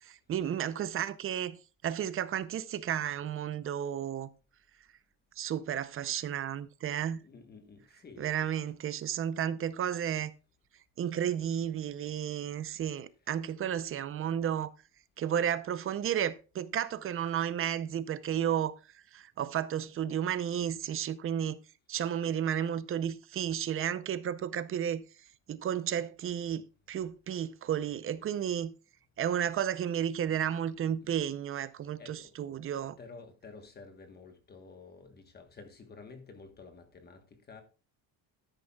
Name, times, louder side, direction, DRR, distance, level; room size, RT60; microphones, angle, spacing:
voice 1, 0.0-1.6 1.8-4.3 5.4-7.2 8.2-10.3 11.0-14.7 15.2-18.8 19.1-21.6 21.9-25.0 25.5-28.7 29.2-33.0, right 9 dB, 35° right, 0.6 m, -32 dB
voice 2, 7.2-8.5 13.2-13.4 28.1-28.2 31.0-31.2 31.6-32.3 33.0-37.6, left 4 dB, 25° left, 1.3 m, -52 dB
13.0 x 10.5 x 2.3 m
cardioid pair, 175°, 37 cm